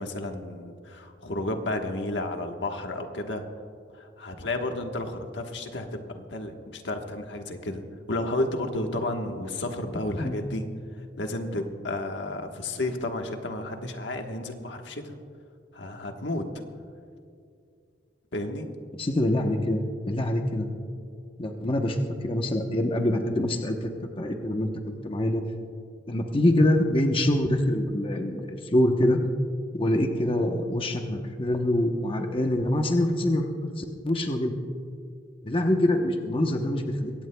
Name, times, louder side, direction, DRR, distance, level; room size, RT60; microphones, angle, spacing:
voice 1, 0.0-3.4 3.9-10.7 11.1-15.1 15.7-16.6 18.3-18.7, left 1 dB, 80° left, 4 dB, 1.3 m, -32 dB
voice 2, 19.0-19.8 20.1-20.7 21.4-22.0 22.2-23.9 24.2-24.7 25.0-25.4 26.1-29.2 29.7-34.5 35.4-37.1, left 1 dB, 30° left, 3 dB, 0.9 m, -25 dB
22.5 x 17.0 x 2.3 m, 2.3 s
head